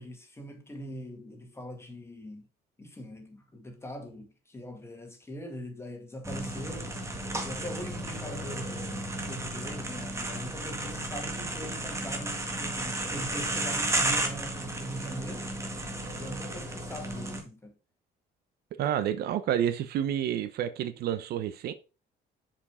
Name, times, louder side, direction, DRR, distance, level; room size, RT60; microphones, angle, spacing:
voice 1, 0.0-2.5 2.8-15.5 16.2-17.8, equal, 15° left, 2.2 m, -42 dB
sound 1, 6.2-17.4, right 1 dB, 15° right, 1.8 m, -33 dB
voice 2, 18.8-21.7, right 10 dB, 70° right, 0.8 m, -29 dB
7.0 x 5.1 x 4.9 m
cardioid pair, 110°, 17 cm